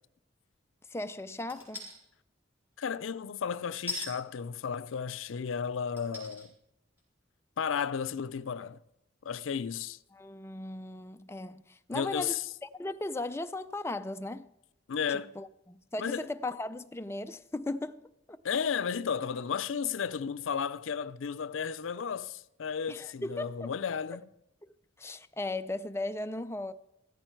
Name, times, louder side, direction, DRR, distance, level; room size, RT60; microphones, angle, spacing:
voice 1, 0.9-1.9 10.1-14.5 15.1-18.4 22.9-23.7 24.6-24.7 25.0-26.7, left 2 dB, 15° left, 0.4 m, -37 dB
sound 1, 1.5-2.0 3.9-4.1 5.0-5.1 6.0-6.5 7.0-7.1, left 2 dB, 10° right, 4.2 m, -38 dB
voice 2, 2.8-6.5 7.6-8.8 9.2-10.0 11.9-12.4 14.9-15.3 16.0-16.3 18.4-24.2, left 7 dB, 85° left, 0.5 m, -33 dB
15.0 x 13.5 x 4.5 m
head